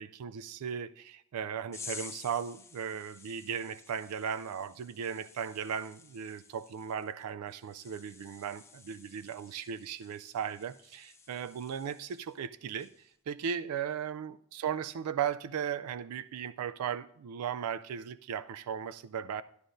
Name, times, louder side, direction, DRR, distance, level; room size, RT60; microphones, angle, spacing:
voice 1, 0.0-19.4, right 8 dB, 90° right, 0.4 m, -37 dB
sound 1, 1.7-12.4 12.7-13.1, left 5 dB, 10° left, 0.5 m, -52 dB
12.5 x 11.0 x 2.6 m
head